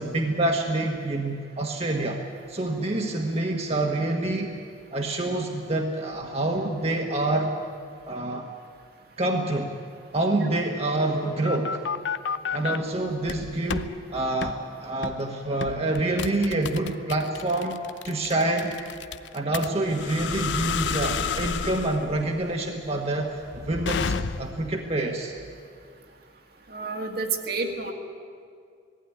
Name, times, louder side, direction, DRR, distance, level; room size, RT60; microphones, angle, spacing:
voice 1, 0.0-2.2 2.5-4.6 4.9-7.5 8.1-8.5 9.2-9.8 10.1-11.8 12.5-17.8 18.0-18.8 19.3-25.3, right 2 dB, 35° right, 1 dB, 1.3 m, -27 dB
sound 1, 11.0-12.8 13.2-13.9 14.4-14.6 15.0-15.2 15.6-24.7, left 5 dB, 75° left, 0.7 m, -31 dB
voice 2, 26.7-27.9, right 4 dB, 55° right, 3 dB, 1.9 m, -29 dB
19.0 x 15.0 x 9.8 m, 2.2 s
head